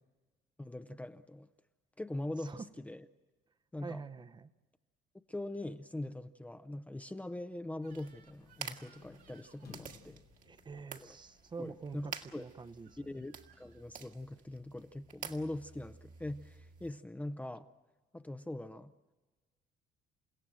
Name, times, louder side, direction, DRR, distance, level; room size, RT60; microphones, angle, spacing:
voice 1, 0.6-1.5 2.0-3.0 3.7-4.0 5.3-10.2 11.0-11.1 11.6-12.4 13.1-17.7 18.1-18.9, left 1 dB, 10° left, 9 dB, 0.7 m, -42 dB
voice 2, 2.4-2.7 3.8-4.5 10.4-13.2, right 4 dB, 25° right, 12 dB, 0.8 m, -46 dB
Crying sobbing / Screech, 7.8-10.0 11.9-12.2 12.8-13.8, right 8 dB, 65° right, 3.5 m, -66 dB
sound 1, 7.9-16.9, right 6 dB, 50° right, 1.8 m, -50 dB
sound 2, 8.4-13.8, left 9 dB, 70° left, 1.4 m, -62 dB
29.5 x 16.5 x 7.7 m, 1.2 s
cardioid pair, 110°, 17 cm